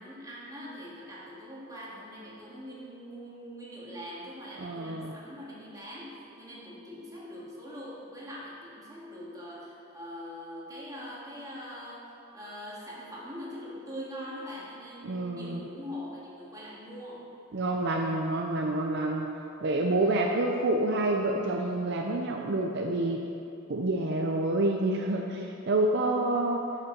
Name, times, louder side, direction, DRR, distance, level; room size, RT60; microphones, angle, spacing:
voice 1, 0.0-17.3 20.0-20.2, equal, 15° right, -6 dB, 2.0 m, -43 dB
voice 2, 4.6-5.1 15.0-15.7 17.5-19.3 19.6-23.2 23.7-26.6, right 2 dB, 55° right, 1 dB, 0.6 m, -28 dB
9.4 x 5.5 x 6.2 m, 2.7 s
head